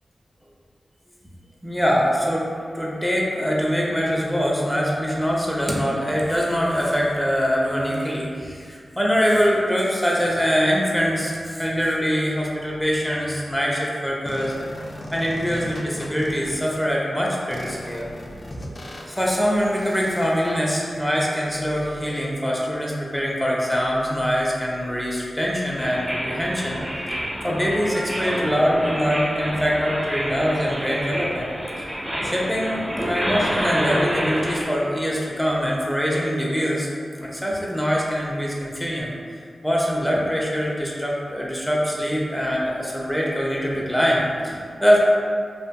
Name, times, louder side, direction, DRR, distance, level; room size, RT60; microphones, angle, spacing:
voice 1, 1.6-2.4 2.7-14.5 15.1-18.1 19.1-26.8 27.4-31.5 32.2-36.9 37.2-39.1 39.6-45.0, equal, 5° left, -4 dB, 0.6 m, -23 dB
sound 1, 14.3-16.8 17.5-22.3, equal, 50° left, 0.3 m, -38 dB
sound 2, 25.8-34.6, equal, 20° right, 0.9 m, -28 dB
2.8 x 2.5 x 2.2 m, 2.2 s
cardioid pair, 40°, 0 cm